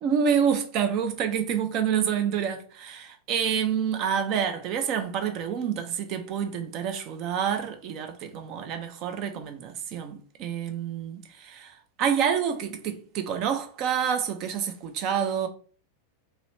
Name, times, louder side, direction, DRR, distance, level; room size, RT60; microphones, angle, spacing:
voice 1, 0.0-15.5, right 8 dB, 40° right, 0.6 m, -28 dB
2.9 x 2.9 x 3.2 m
figure-of-eight pair, 90°, 0 cm